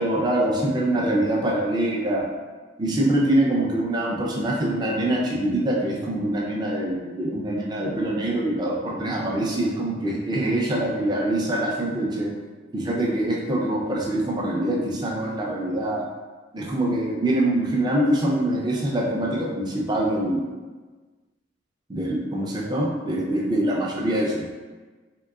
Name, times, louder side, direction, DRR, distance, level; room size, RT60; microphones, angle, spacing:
voice 1, 0.0-2.2 2.8-12.3 12.7-16.0 16.5-20.5 21.9-24.5, right 1 dB, 20° right, -3 dB, 0.4 m, -24 dB
3.7 x 3.0 x 2.3 m, 1.3 s
head